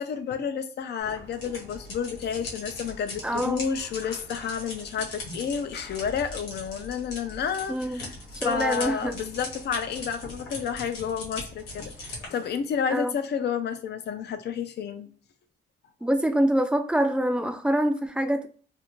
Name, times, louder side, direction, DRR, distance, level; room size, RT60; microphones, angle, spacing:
voice 1, 0.0-8.1 8.4-15.1, left 7 dB, 60° left, 0.5 m, -30 dB
sound 1, 1.0-12.3, left 2 dB, 90° left, 1.1 m, -40 dB
voice 2, 3.2-3.6 7.7-8.0 8.3-9.2 12.9-13.2 16.0-18.5, equal, 5° right, 0.4 m, -25 dB
2.5 x 2.4 x 3.0 m
cardioid pair, 90°, 20 cm